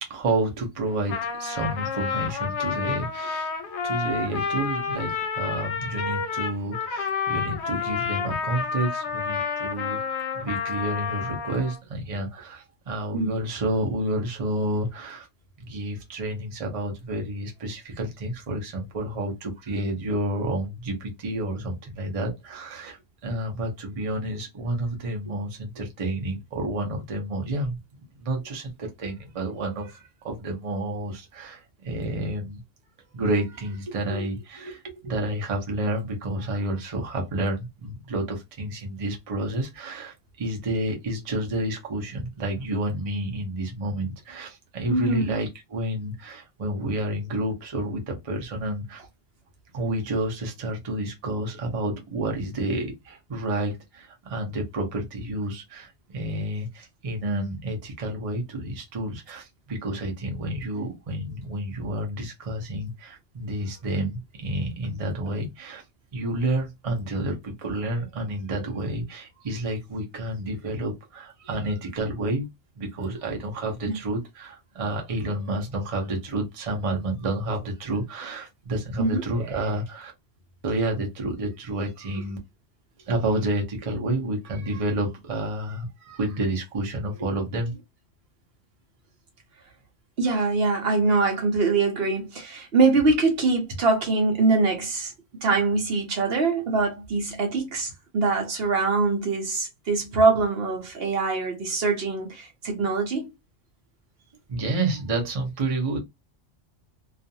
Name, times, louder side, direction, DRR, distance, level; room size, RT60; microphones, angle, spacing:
voice 1, 0.0-3.5 3.8-15.3 15.6-27.8 28.2-32.6 33.1-49.0 49.7-65.8 66.1-72.5 72.8-80.1 80.6-82.4 83.1-87.8 104.5-106.0, right 1 dB, 35° right, 0.7 m, -30 dB
Trumpet, 0.9-11.8, left 6 dB, 75° left, 0.8 m, -30 dB
voice 2, 44.9-45.3 73.8-74.0 79.0-79.2 90.2-95.1 95.4-103.3, right 3 dB, 60° right, 0.9 m, -23 dB
2.4 x 2.4 x 2.6 m
omnidirectional pair, 1.2 m